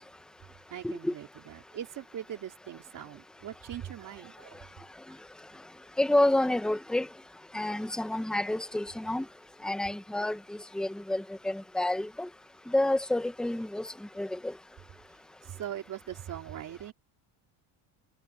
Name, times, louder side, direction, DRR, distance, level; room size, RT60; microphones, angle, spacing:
voice 1, 0.7-4.7 5.5-5.6 15.4-16.9, right 11 dB, 45° right, 4.8 m, -41 dB
voice 2, 6.0-7.1 7.5-9.3 9.6-12.3 12.7-13.9 14.2-14.5, left 1 dB, ahead, 1.4 m, -29 dB
cardioid pair, 140°, 42 cm